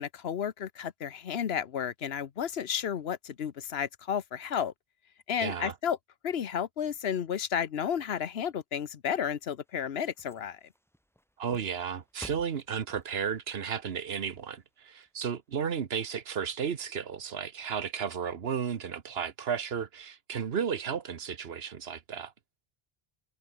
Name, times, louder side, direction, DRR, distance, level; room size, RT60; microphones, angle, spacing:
voice 1, 0.0-4.7 5.3-6.0 6.2-10.6, left 8 dB, 85° left, 1.1 m, -32 dB
voice 2, 5.4-5.7 11.4-22.3, right 7 dB, 75° right, 1.3 m, -33 dB
sound 1, 9.4-15.7 16.2-16.3, equal, ahead, 4.1 m, -55 dB
omnidirectional pair, 1.0 m